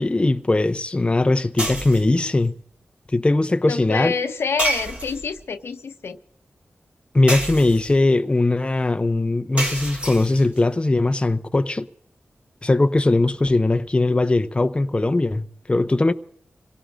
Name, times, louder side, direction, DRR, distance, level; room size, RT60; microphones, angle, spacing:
voice 1, 0.0-2.5 3.1-4.1 7.1-11.9 12.6-16.1, left 2 dB, 25° left, 0.6 m, -20 dB
sound 1, 1.6-2.2 4.6-5.4 7.3-8.1 9.6-10.6, right 1 dB, 30° right, 2.5 m, -28 dB
voice 2, 3.7-6.2, left 5 dB, 80° left, 0.9 m, -27 dB
26.5 x 17.5 x 2.5 m
cardioid pair, 65°, 4 cm